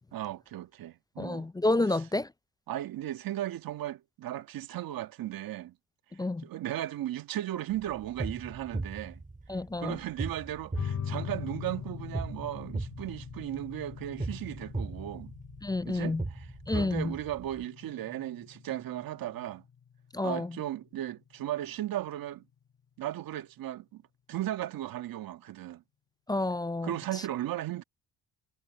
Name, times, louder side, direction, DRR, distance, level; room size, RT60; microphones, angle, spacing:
voice 1, 0.1-1.5 1.9-2.0 2.7-5.7 6.4-9.2 9.8-15.3 15.9-19.6 20.2-22.4 23.0-24.0 24.3-25.8 26.8-27.8, right 13 dB, 70° right, 1.7 m, -36 dB
voice 2, 1.2-2.3 6.2-6.4 9.5-10.0 15.6-16.2 16.7-17.1 20.1-20.5 26.3-26.9, left 2 dB, 10° left, 0.4 m, -29 dB
sound 1, 7.7-17.6, right 2 dB, 20° right, 5.6 m, -39 dB
sound 2, 10.7-21.8, left 7 dB, 55° left, 6.4 m, -42 dB
supercardioid pair, 60°, 36 cm